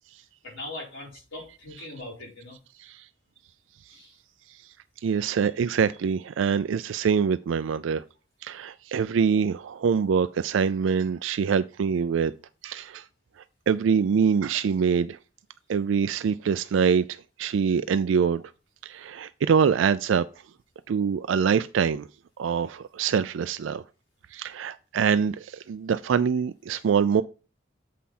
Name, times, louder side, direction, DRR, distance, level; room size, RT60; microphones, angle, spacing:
voice 1, 0.4-2.6 3.9-4.2, left 2 dB, 85° left, 4.6 m, -40 dB
voice 2, 5.0-8.0 8.4-12.3 12.6-13.0 13.7-15.2 15.7-18.4 18.8-20.3 20.9-22.1 22.4-23.8 24.3-27.2, right 6 dB, 85° right, 0.4 m, -24 dB
7.4 x 5.7 x 4.2 m
head